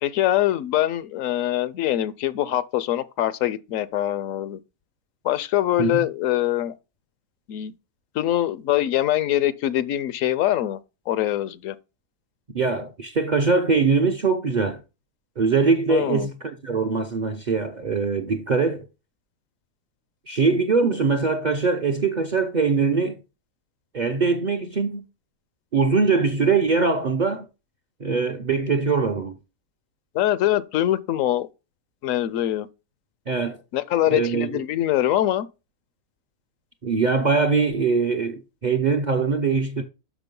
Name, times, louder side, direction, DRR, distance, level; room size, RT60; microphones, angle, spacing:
voice 1, 0.0-4.6 5.2-6.7 7.5-7.7 8.1-10.8 11.1-11.7 15.9-16.3 30.1-31.5 32.0-32.7 33.7-35.5, left 13 dB, 70° left, 0.9 m, -23 dB
voice 2, 12.5-14.8 15.4-18.9 20.3-23.2 23.9-25.0 25.7-27.5 28.0-29.4 33.3-33.6 34.1-34.5 36.8-39.8, right 4 dB, 45° right, 0.6 m, -22 dB
6.2 x 6.1 x 5.2 m
omnidirectional pair, 1.5 m